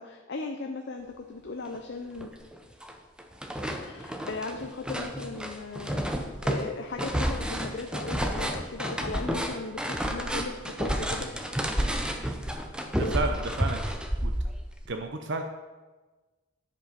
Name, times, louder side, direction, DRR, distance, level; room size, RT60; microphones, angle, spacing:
voice 1, 0.0-2.3 3.8-10.5 10.8-11.9 13.0-13.2, left 3 dB, 55° left, 3 dB, 0.6 m, -37 dB
sound 1, 1.7-1.8 2.2-2.9 3.2-14.9, equal, 5° right, 0.6 m, -31 dB
voice 2, 13.0-13.8 14.2-14.3 14.9-15.4, right 3 dB, 55° right, 5 dB, 0.6 m, -31 dB
10.0 x 5.3 x 5.8 m, 1.3 s
head